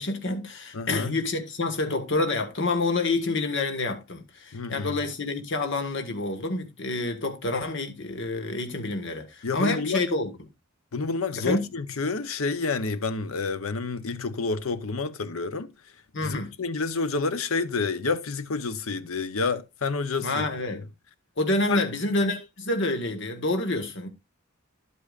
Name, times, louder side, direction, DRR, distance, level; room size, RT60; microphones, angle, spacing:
voice 1, 0.0-10.3 11.4-11.6 16.1-16.5 20.2-20.8 21.4-24.1, left 2 dB, 60° left, 1.5 m, -28 dB
voice 2, 0.7-1.1 4.5-5.0 9.4-10.0 10.9-15.7 16.2-20.5 21.7-21.8, left 4 dB, 80° left, 0.8 m, -29 dB
11.0 x 8.4 x 2.4 m
head